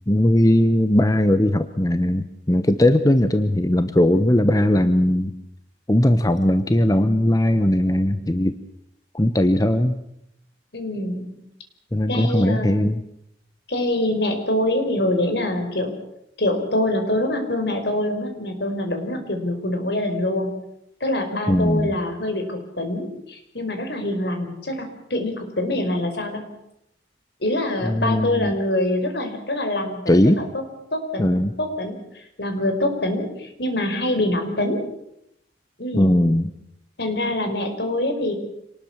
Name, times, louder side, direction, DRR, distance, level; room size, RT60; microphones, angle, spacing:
voice 1, 0.1-5.3 5.9-8.6 9.1-10.0 11.9-13.0 21.5-21.9 27.8-28.5 30.1-30.4 31.2-31.5 35.9-36.5, left 1 dB, 20° left, 10 dB, 1.0 m, -19 dB
voice 2, 10.7-11.3 12.1-12.9 13.7-15.9 16.4-20.5 21.0-26.4 27.4-30.6 30.9-31.3 31.6-34.8 35.8-36.1 37.0-38.3, left 1 dB, 65° left, 6 dB, 5.0 m, -25 dB
26.5 x 19.5 x 7.3 m, 0.78 s
head